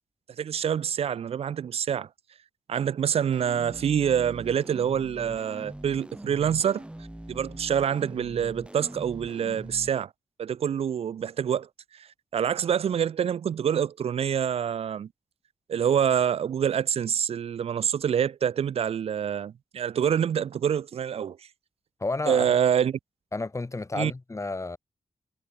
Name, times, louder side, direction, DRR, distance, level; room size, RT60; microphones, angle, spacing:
voice 1, 0.4-2.1 2.7-6.8 7.3-10.1 10.4-11.7 11.9-15.1 15.7-21.4 22.3-23.0 23.9-24.1, right 8 dB, 90° right, 1.5 m, -26 dB
sound 1, 3.3-9.9, right 1 dB, 10° right, 6.8 m, -42 dB
voice 2, 22.0-22.5 23.3-24.8, left 3 dB, 30° left, 2.4 m, -31 dB
cardioid pair, 65°, 10 cm